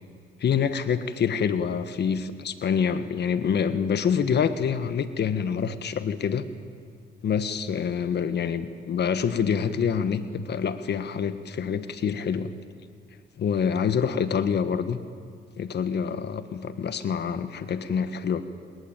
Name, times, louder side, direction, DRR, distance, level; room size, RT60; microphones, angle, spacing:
voice 1, 0.4-6.5 7.2-12.5 13.4-15.0 15.6-18.4, left 7 dB, 60° left, 11 dB, 1.5 m, -26 dB
27.5 x 21.0 x 8.9 m, 2.2 s
cardioid pair, 90°, 20 cm